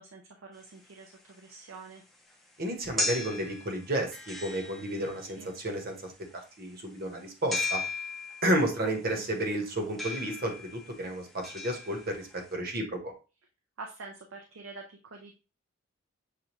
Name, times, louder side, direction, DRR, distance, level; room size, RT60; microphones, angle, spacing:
voice 1, 0.0-2.0 5.4-5.5 8.8-9.3 13.8-15.3, right 3 dB, 90° right, 3 dB, 0.6 m, -46 dB
sound 1, 0.6-12.5, left 3 dB, ahead, 0.6 m, -38 dB
voice 2, 2.6-6.1 6.6-7.8 8.4-12.9, right 1 dB, 50° right, 3 dB, 1.0 m, -31 dB
6.7 x 2.3 x 3.0 m, 0.32 s
head